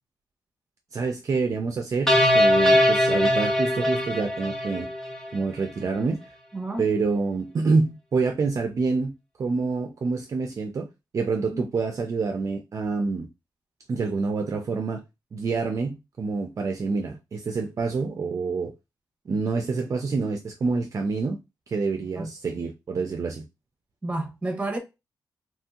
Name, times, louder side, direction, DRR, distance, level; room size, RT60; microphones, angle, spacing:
voice 1, 0.9-4.9 5.3-6.2 6.8-9.1 9.4-10.9 11.1-13.3 13.9-15.0 15.3-18.7 19.3-21.4 21.7-23.4, right 4 dB, 45° right, 0.4 m, -27 dB
sound 1, 2.1-5.4, left 1 dB, 5° left, 0.8 m, -21 dB
voice 2, 6.5-6.9 11.5-11.6 22.2-22.3 24.0-24.8, right 2 dB, 15° right, 1.0 m, -30 dB
3.0 x 2.7 x 2.3 m
cardioid pair, 105°, 8 cm